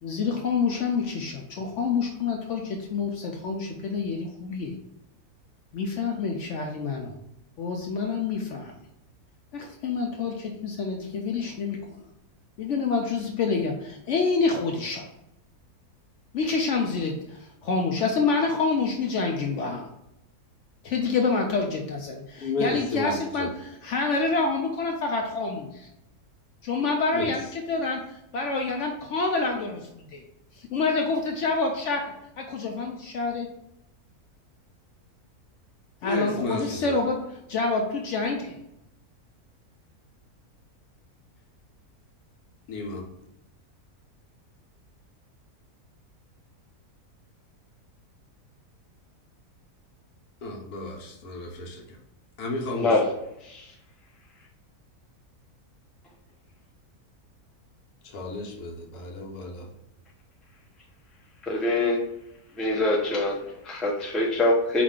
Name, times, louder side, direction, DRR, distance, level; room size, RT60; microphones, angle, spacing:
voice 1, 0.0-4.7 5.7-7.1 7.6-8.7 9.5-12.0 12.6-15.1 16.3-19.9 20.8-25.9 26.6-30.2 30.5-33.5 36.0-37.2 37.5-38.6, left 4 dB, 65° left, 2 dB, 0.7 m, -27 dB
voice 2, 22.4-23.5 27.1-27.4 36.0-37.0 42.7-43.0 50.4-52.0 52.4-53.0 58.0-59.7, left 2 dB, 80° left, 1 dB, 1.3 m, -32 dB
voice 3, 52.7-53.1 53.4-53.7 61.4-62.0 62.6-64.8, left 2 dB, ahead, -3 dB, 0.4 m, -24 dB
4.9 x 2.4 x 3.6 m, 0.84 s
omnidirectional pair, 1.6 m